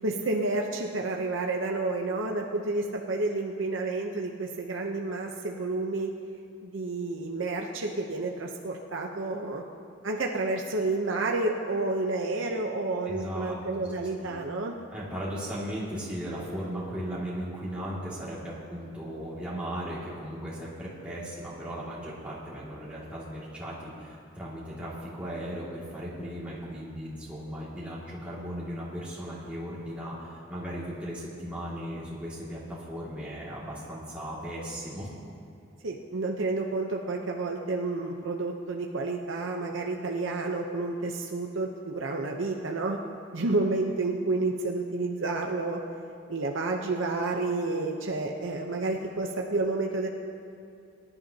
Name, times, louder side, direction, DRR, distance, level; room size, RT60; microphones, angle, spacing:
voice 1, 0.0-6.1 6.6-9.6 10.0-14.8 35.8-43.0 43.3-45.8 46.3-50.1, right 2 dB, 70° right, 1 dB, 0.8 m, -30 dB
voice 2, 13.1-13.6 14.2-14.3 14.9-35.1, equal, 5° right, -9 dB, 2.3 m, -37 dB
23.0 x 11.0 x 2.9 m, 2.4 s
head